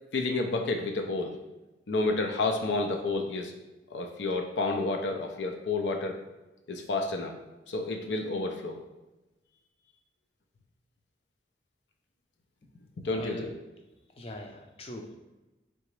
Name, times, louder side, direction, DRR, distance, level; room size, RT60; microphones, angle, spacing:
voice 1, 0.1-1.3 1.9-3.5 3.9-6.2 6.7-7.3 7.7-8.8 13.0-13.5, left 3 dB, 85° left, 4 dB, 0.5 m, -30 dB
voice 2, 13.1-13.5 14.2-15.2, left 1 dB, 35° left, 3 dB, 0.5 m, -41 dB
3.8 x 3.4 x 3.1 m, 1.1 s
head